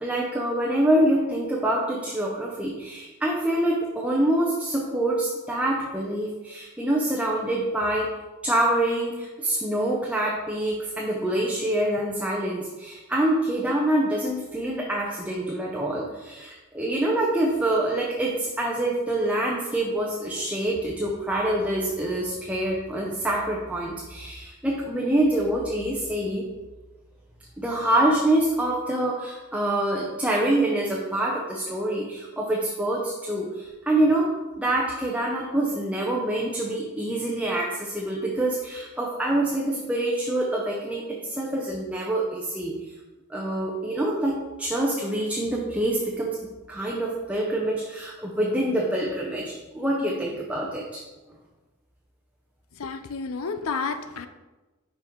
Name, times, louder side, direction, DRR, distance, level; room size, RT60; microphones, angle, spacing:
voice 1, 0.0-8.2 8.4-26.5 27.6-42.7 43.3-46.4 46.7-51.0, right 1 dB, 5° right, -3 dB, 0.7 m, -26 dB
voice 2, 52.8-54.3, left 4 dB, 75° left, 9 dB, 0.6 m, -30 dB
6.0 x 5.3 x 4.5 m, 1.2 s
head